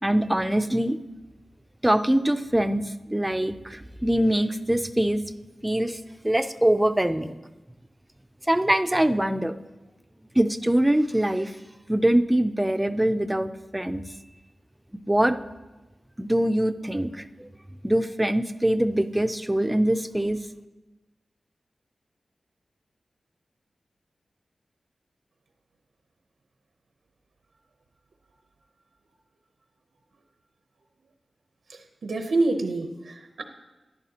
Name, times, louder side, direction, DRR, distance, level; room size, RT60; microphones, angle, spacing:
voice 1, 0.0-1.0 1.8-5.2 5.6-7.4 8.5-9.5 10.3-11.6 11.9-14.0 15.1-15.4 16.2-17.5 17.8-20.5, right 1 dB, 10° right, 10 dB, 0.4 m, -23 dB
voice 2, 32.0-33.4, right 2 dB, 80° right, 5 dB, 0.7 m, -26 dB
13.0 x 11.0 x 2.9 m, 1.1 s
wide cardioid pair, 120°, 0 cm